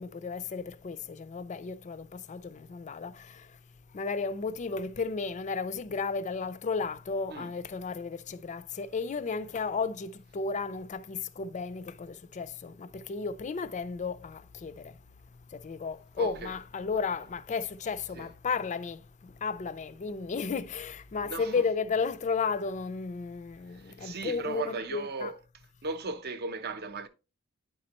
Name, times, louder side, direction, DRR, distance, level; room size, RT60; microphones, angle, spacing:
voice 1, 0.0-3.5 3.9-15.0 15.5-25.3, left 4 dB, 35° left, 0.4 m, -34 dB
voice 2, 16.2-16.5 18.1-18.3 21.2-21.7 23.7-25.4 25.8-27.1, right 3 dB, 50° right, 0.7 m, -36 dB
9.7 x 4.2 x 2.9 m
head